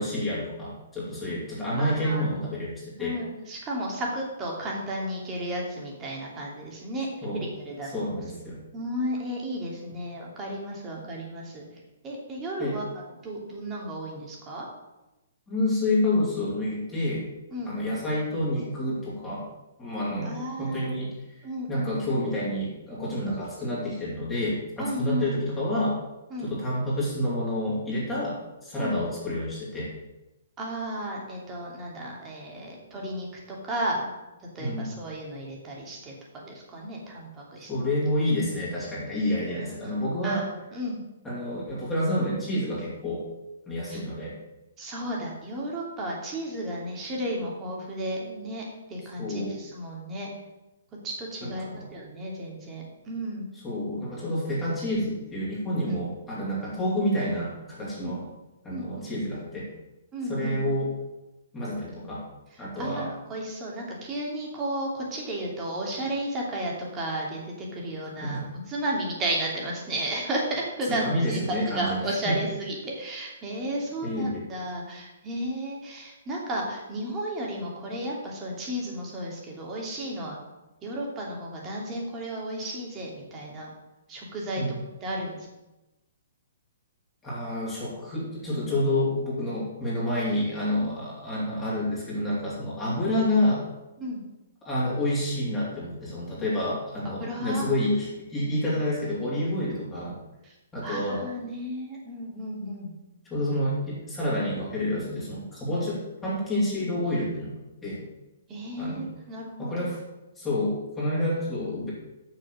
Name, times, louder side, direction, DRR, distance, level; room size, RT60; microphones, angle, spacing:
voice 1, 0.0-3.1 7.2-7.5 7.9-8.6 12.6-12.8 15.5-17.2 17.6-19.5 19.8-21.1 21.7-26.0 26.4-29.9 34.6-34.9 37.6-40.5 41.2-43.3 43.7-44.4 49.2-49.6 51.4-51.9 53.6-58.2 58.6-59.7 60.3-60.9 61.5-62.3 62.6-63.1 68.2-68.4 70.9-72.4 74.0-74.4 84.6-84.7 87.2-93.6 94.6-100.2 100.7-101.3 103.3-107.5 107.8-108.0 108.8-109.1 109.6-110.0 110.4-111.9, left 1 dB, 15° left, -8 dB, 3.1 m, -28 dB
voice 2, 1.8-2.3 3.0-8.2 8.7-14.7 17.5-17.7 20.2-21.0 21.4-21.9 24.8-25.3 26.3-26.5 28.8-29.0 30.6-34.1 34.5-37.7 39.6-39.9 40.2-41.0 43.9-44.0 44.8-50.3 51.0-53.5 55.8-56.0 58.0-58.1 58.7-59.1 60.1-60.6 62.5-68.4 68.7-80.4 80.8-83.7 84.1-84.6 85.0-85.4 90.8-91.0 93.0-93.1 94.0-94.2 97.0-97.7 98.6-98.7 99.4-99.6 100.4-100.6 100.8-102.9 105.7-105.9 108.5-109.7, right 1 dB, 20° right, -2 dB, 2.8 m, -33 dB
6.9 x 6.7 x 6.4 m, 1.0 s
figure-of-eight pair, 125°, 0 cm